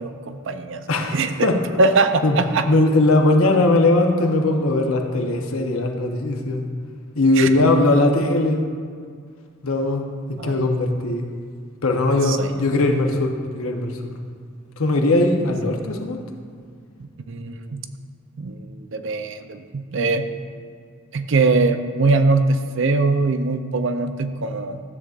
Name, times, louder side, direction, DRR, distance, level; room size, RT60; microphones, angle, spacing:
voice 1, 0.0-0.9 1.1-1.5 1.8-2.7 7.4-7.5 10.4-10.6 12.2-12.5 17.3-17.8 18.4-20.3 21.1-24.8, right 3 dB, 60° right, 9 dB, 0.5 m, -21 dB
voice 2, 0.9-1.6 2.2-2.4 2.7-6.6 7.2-8.6 9.6-11.3 11.8-14.1 14.8-16.2, left 2 dB, 80° left, 3 dB, 0.9 m, -19 dB
13.0 x 7.8 x 2.5 m, 2.1 s
head